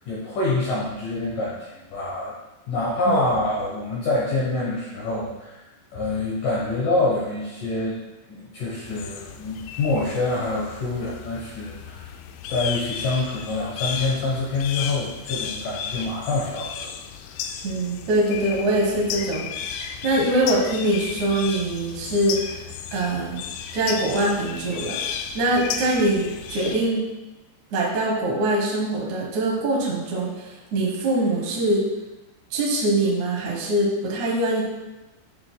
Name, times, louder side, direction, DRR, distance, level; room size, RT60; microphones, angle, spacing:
voice 1, 0.1-2.3 2.7-5.6 5.9-8.0 8.3-12.1 12.5-17.0, left 2 dB, 70° left, -6 dB, 2.0 m, -26 dB
sound 1, 8.8-26.9, left 7 dB, 90° left, 3.0 m, -34 dB
voice 2, 17.6-19.5 19.8-22.4 22.9-23.4 23.7-25.0 25.3-27.0 27.7-31.9 32.5-34.6, right 1 dB, 65° right, -3 dB, 1.9 m, -23 dB
9.8 x 6.2 x 2.2 m, 1.1 s
omnidirectional pair, 5.3 m